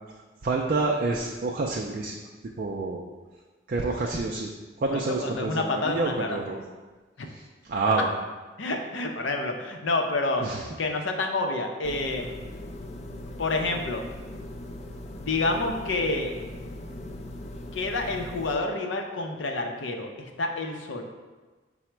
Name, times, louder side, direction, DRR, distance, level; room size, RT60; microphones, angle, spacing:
voice 1, 0.4-2.2 2.6-3.0 3.7-4.5 4.8-6.6 7.3-8.1 10.4-10.7, right 3 dB, 50° right, 0 dB, 0.3 m, -28 dB
voice 2, 4.9-6.4 8.6-10.5 10.8-12.4 13.4-14.0 15.2-16.3 17.7-21.0, left 2 dB, 90° left, 3 dB, 0.5 m, -28 dB
sound 1, 11.8-18.6, left 1 dB, 35° left, 0.3 m, -39 dB
5.8 x 2.1 x 4.4 m, 1.3 s
head